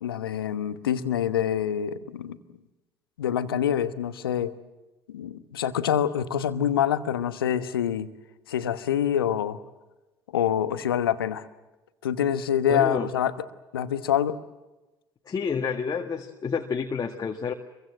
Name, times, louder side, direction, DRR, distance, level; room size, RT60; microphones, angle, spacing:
voice 1, 0.0-2.4 3.2-4.5 5.1-8.1 8.5-9.6 10.3-11.5 12.0-13.3 13.7-14.4, left 9 dB, 80° left, 12 dB, 1.1 m, -26 dB
voice 2, 12.7-13.1 15.3-17.5, left 6 dB, 30° left, 3 dB, 1.8 m, -29 dB
25.5 x 23.0 x 7.6 m, 1.1 s
figure-of-eight pair, 60°, 12 cm